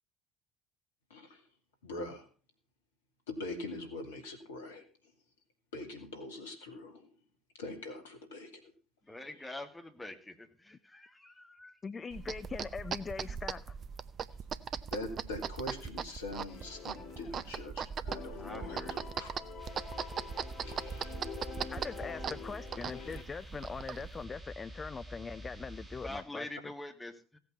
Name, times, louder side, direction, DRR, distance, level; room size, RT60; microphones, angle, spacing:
voice 1, 1.1-1.4 1.8-2.3 3.3-4.8 5.7-7.1 7.6-8.7 14.9-19.3 20.6-21.2 21.6-21.7, left 2 dB, 75° left, 5 dB, 2.5 m, -43 dB
voice 2, 9.0-11.8 18.4-19.0 26.0-27.4, left 1 dB, 10° left, 5 dB, 2.3 m, -45 dB
voice 3, 11.8-13.8 21.7-26.5, left 5 dB, 30° left, 15 dB, 0.5 m, -41 dB
sound 1, 12.1-24.3, right 7 dB, 40° right, 0.7 m, -40 dB
sound 2, 16.5-17.8 18.1-23.2, left 6 dB, 55° left, 2.1 m, -46 dB
sound 3, 19.6-26.2, equal, 10° right, 6.0 m, -49 dB
16.5 x 8.4 x 5.5 m, 0.38 s
figure-of-eight pair, 60°, 0 cm